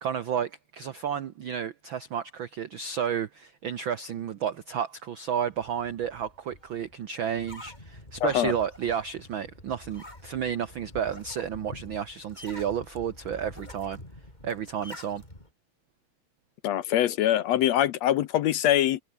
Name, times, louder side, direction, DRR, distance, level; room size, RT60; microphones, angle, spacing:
voice 1, 0.0-14.0 14.4-15.2, right 8 dB, 80° right, 1.1 m, -31 dB
sound 1, 5.4-15.5, left 1 dB, 10° left, 5.7 m, -47 dB
voice 2, 8.2-8.5 16.6-19.0, left 12 dB, 70° left, 1.8 m, -23 dB
omnidirectional pair, 3.6 m